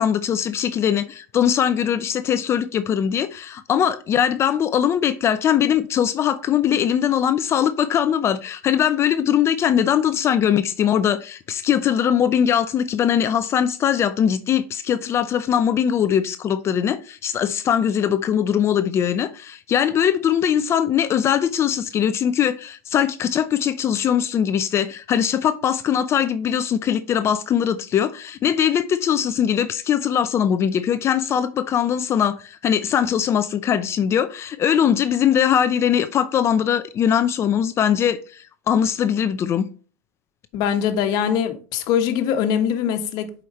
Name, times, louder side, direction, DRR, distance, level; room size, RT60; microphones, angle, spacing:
voice 1, 0.0-39.7, left 9 dB, 35° left, 0.5 m, -21 dB
voice 2, 40.5-43.3, left 8 dB, 55° left, 1.4 m, -22 dB
7.6 x 5.0 x 3.0 m
hypercardioid pair, 105°, 8 cm